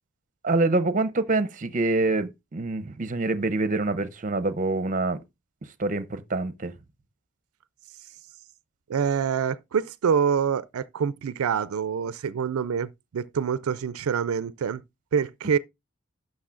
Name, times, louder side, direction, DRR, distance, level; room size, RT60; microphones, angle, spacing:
voice 1, 0.4-5.2 5.8-6.8, right 2 dB, 35° right, 0.6 m, -26 dB
voice 2, 8.9-14.8 15.1-15.6, right 7 dB, 85° right, 0.4 m, -26 dB
11.5 x 6.5 x 2.4 m
head